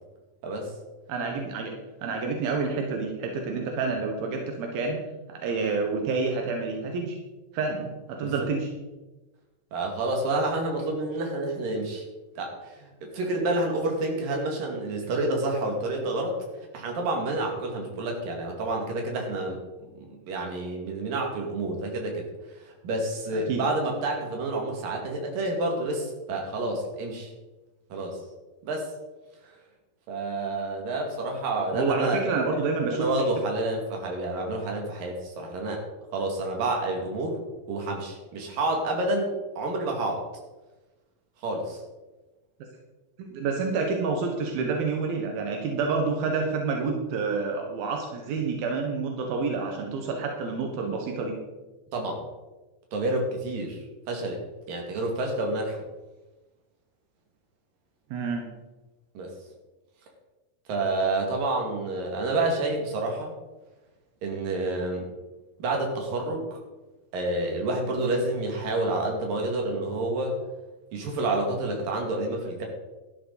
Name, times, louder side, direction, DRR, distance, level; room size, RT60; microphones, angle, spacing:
voice 1, 1.1-1.7 2.0-7.2 7.5-8.7 23.3-23.6 31.7-33.1 43.2-51.4 58.1-58.5, right 4 dB, 90° right, 2 dB, 3.3 m, -28 dB
voice 2, 9.7-12.0 12.4-16.4 16.7-19.6 20.0-22.2 22.6-27.3 27.9-28.2 28.7-28.9 30.1-32.2 32.9-35.8 36.1-37.4 37.7-40.2 41.4-41.8 51.9-52.2 52.9-53.8 54.1-54.4 54.7-55.8 59.2-59.3 60.7-63.3 64.2-65.1 65.6-66.5 67.1-70.4 70.9-72.7, right 2 dB, 70° right, 1 dB, 4.0 m, -29 dB
13.0 x 12.5 x 4.1 m, 1.1 s
omnidirectional pair, 4.1 m